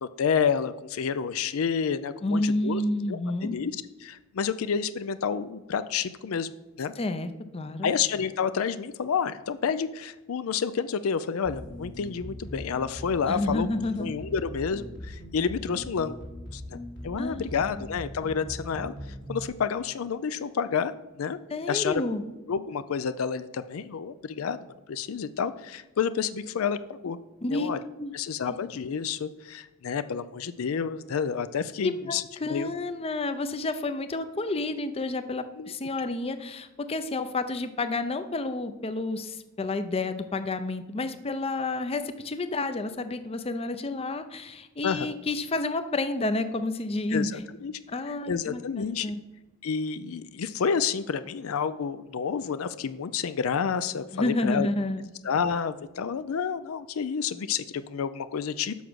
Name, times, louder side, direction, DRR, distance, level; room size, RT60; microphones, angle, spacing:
voice 1, 0.0-2.8 3.1-6.5 6.8-6.9 7.8-13.7 14.0-16.2 16.5-16.8 17.0-18.9 19.3-21.4 21.7-22.0 22.5-27.2 27.5-27.8 28.1-32.7 35.6-35.7 44.8-45.1 47.1-47.7 48.3-49.1 49.6-54.7 55.2-58.8, left 6 dB, 80° left, 13 dB, 0.4 m, -29 dB
voice 2, 2.2-3.5 7.0-7.9 13.3-14.1 17.2-17.5 21.5-22.2 27.4-27.7 28.0-28.1 28.5-28.6 31.8-47.4 47.9-49.2 54.1-55.0, left 2 dB, 30° left, 10 dB, 0.5 m, -30 dB
sound 1, 11.4-19.5, equal, 55° left, 1.6 m, -40 dB
7.1 x 6.0 x 6.2 m, 1.1 s
head